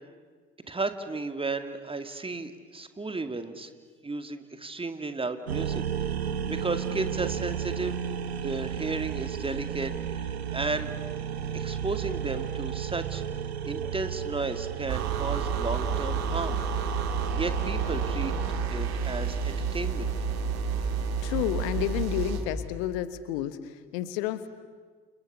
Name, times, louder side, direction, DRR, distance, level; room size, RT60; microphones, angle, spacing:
voice 1, 0.7-3.7 4.0-8.0 8.4-10.9 11.5-13.2 13.6-16.6 17.4-18.3 18.7-20.1, right 3 dB, 15° right, 9 dB, 2.3 m, -34 dB
sound 1, 5.5-18.6, right 8 dB, 80° right, 1.2 m, -33 dB
sound 2, 14.9-22.5, right 5 dB, 55° right, 2.7 m, -30 dB
voice 2, 21.2-24.5, left 12 dB, 65° left, 13 dB, 1.4 m, -31 dB
29.5 x 29.0 x 6.9 m, 1.5 s
figure-of-eight pair, 55°, 31 cm